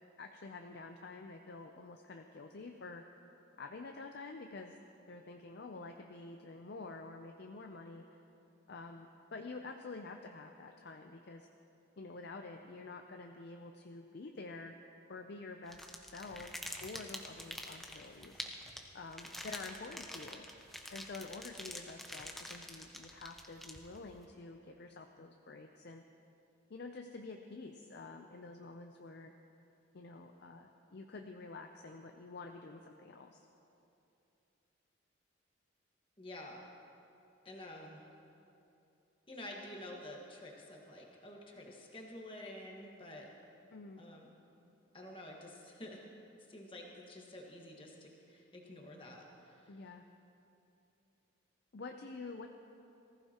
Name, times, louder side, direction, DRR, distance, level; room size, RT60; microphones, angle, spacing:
voice 1, 0.2-3.0 3.6-4.8 5.1-8.0 8.7-11.5 12.0-14.7 15.1-16.5 16.8-18.4 18.9-20.4 20.9-26.0 26.7-29.3 29.9-33.4 43.7-44.0 49.7-50.0 51.7-52.5, left 3 dB, 50° left, 4 dB, 0.5 m, -48 dB
sound 1, 15.7-24.1, equal, ahead, 0.6 m, -47 dB
voice 2, 36.2-36.6 37.4-38.0 39.3-43.3 44.0-44.3 44.9-46.1 46.5-49.8, left 1 dB, 25° left, -1 dB, 1.5 m, -49 dB
19.0 x 15.0 x 2.9 m, 2.8 s
head